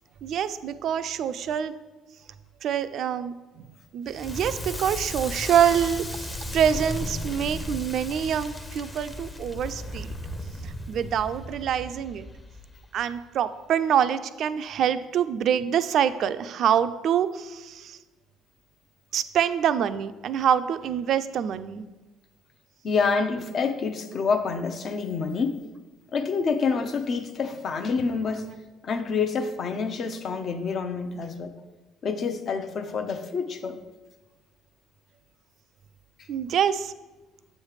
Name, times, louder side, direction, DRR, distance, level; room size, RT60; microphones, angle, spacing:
voice 1, 0.2-1.7 2.6-3.7 3.9-10.1 10.6-12.3 12.9-18.0 19.1-21.8 36.3-36.9, right 9 dB, 60° right, 12 dB, 0.3 m, -25 dB
Crackle, 4.1-13.0, left 1 dB, 20° left, 0.7 m, -35 dB
voice 2, 22.8-25.6 26.1-28.5 28.8-31.5 32.0-33.8, left 5 dB, 50° left, 8 dB, 0.6 m, -27 dB
7.2 x 3.2 x 4.9 m, 1.2 s
supercardioid pair, 75°, 0 cm